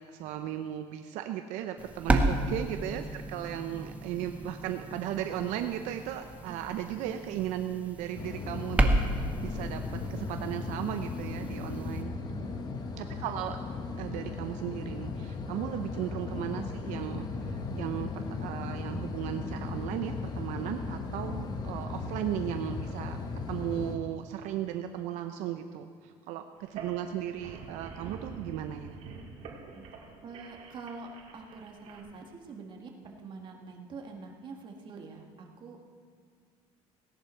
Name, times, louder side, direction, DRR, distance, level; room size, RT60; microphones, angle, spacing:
voice 1, 0.1-12.1 13.0-13.6 14.0-23.2 23.5-28.9, right 11 dB, 80° right, 7 dB, 0.7 m, -36 dB
sound 1, 1.8-12.0, right 1 dB, 10° right, 1.0 m, -33 dB
sound 2, 8.2-24.0, left 4 dB, 35° left, 1.0 m, -37 dB
voice 2, 11.7-12.7 15.9-16.0 29.7-29.8 30.2-35.8, right 4 dB, 40° right, 1 dB, 1.8 m, -46 dB
sound 3, 26.6-32.0, right 5 dB, 60° right, 2.2 m, -46 dB
17.0 x 10.5 x 4.5 m, 2.1 s
cardioid pair, 135°, 12 cm